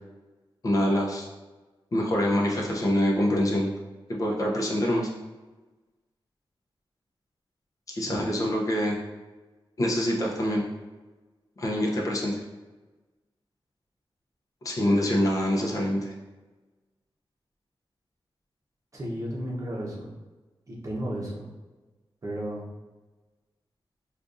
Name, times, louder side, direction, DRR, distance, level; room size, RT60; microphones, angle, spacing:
voice 1, 0.6-1.3 1.9-3.7 4.1-5.1 7.9-9.0 9.8-10.6 11.6-12.4 14.6-16.1, equal, 35° left, -2 dB, 0.6 m, -25 dB
voice 2, 18.9-20.1 20.7-21.5 22.2-22.7, equal, 35° right, -3 dB, 0.9 m, -33 dB
5.0 x 2.4 x 2.5 m, 1.2 s
wide cardioid pair, 130°, 9 cm